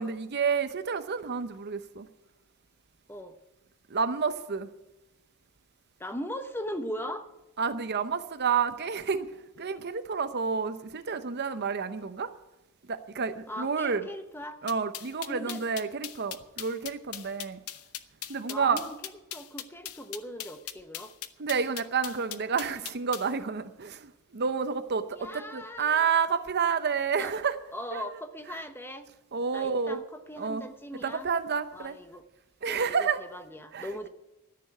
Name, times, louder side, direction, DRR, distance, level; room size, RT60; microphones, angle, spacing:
voice 1, 0.0-2.1 3.9-4.7 7.6-9.3 9.6-12.3 12.9-14.1 14.6-17.6 18.3-18.8 21.4-27.6 27.9-28.1 29.3-30.0 30.4-30.7 31.0-31.9 32.6-33.2 33.7-34.1, right 6 dB, 50° right, 11 dB, 0.7 m, -29 dB
voice 2, 6.0-7.3 13.5-14.6 15.3-15.6 18.5-21.1 25.1-26.2 27.2-27.3 27.7-29.1 29.5-31.3 31.7-32.2 32.7-34.1, equal, 10° left, 8 dB, 0.9 m, -39 dB
sound 1, 14.7-23.3, left 12 dB, 75° left, 0.8 m, -39 dB
13.0 x 6.9 x 9.7 m, 0.96 s
head